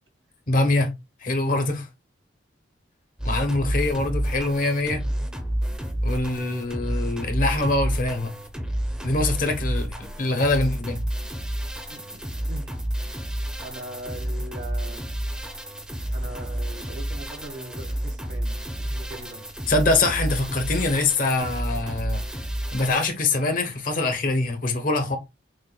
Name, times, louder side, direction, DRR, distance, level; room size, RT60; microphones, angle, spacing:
voice 1, 0.5-0.9 1.2-1.9 3.2-5.0 6.0-8.3 9.0-11.0 19.7-22.2 22.7-25.2, left 2 dB, 45° left, 1.0 m, -24 dB
sound 1, 3.2-23.1, right 1 dB, 5° right, 0.7 m, -30 dB
voice 2, 11.9-12.7 13.5-15.1 16.1-19.4, right 2 dB, 65° right, 1.7 m, -41 dB
6.4 x 2.5 x 2.3 m
head